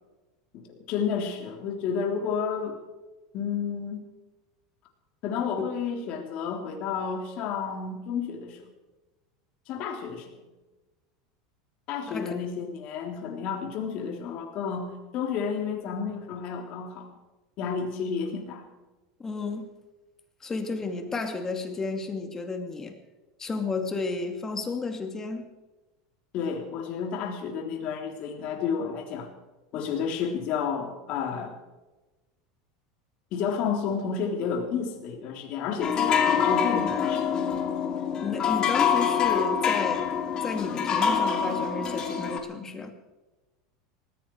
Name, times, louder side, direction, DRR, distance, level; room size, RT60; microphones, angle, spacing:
voice 1, 0.5-2.8 3.3-4.0 5.2-8.6 9.7-10.3 11.9-17.1 17.6-18.7 26.3-29.3 29.7-31.6 33.3-37.2, left 6 dB, 55° left, 3 dB, 3.4 m, -31 dB
voice 2, 12.1-12.4 19.2-19.7 20.4-23.0 23.4-25.5 38.2-40.1 40.4-42.9, left 3 dB, 20° left, 6 dB, 2.5 m, -32 dB
sound 1, 35.8-42.4, left 7 dB, 35° left, 2.5 m, -25 dB
19.0 x 15.0 x 4.7 m, 1.1 s
supercardioid pair, 110°, 2 cm